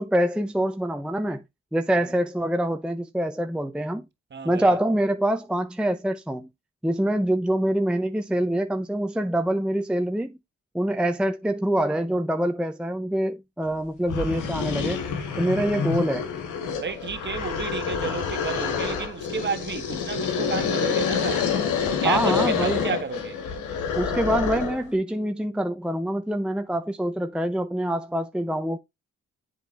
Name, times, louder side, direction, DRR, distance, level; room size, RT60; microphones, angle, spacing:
voice 1, 0.0-1.4 1.7-4.0 4.4-6.5 6.8-10.4 10.7-15.0 15.4-16.3 22.0-22.8 23.9-28.8, right 1 dB, 5° right, 0.7 m, -25 dB
voice 2, 4.3-4.7 16.8-21.5 21.9-23.4, right 6 dB, 35° right, 1.5 m, -31 dB
sound 1, 13.7-13.8 14.1-24.9, left 6 dB, 90° left, 2.0 m, -27 dB
7.8 x 5.6 x 3.4 m
cardioid pair, 90°, 30 cm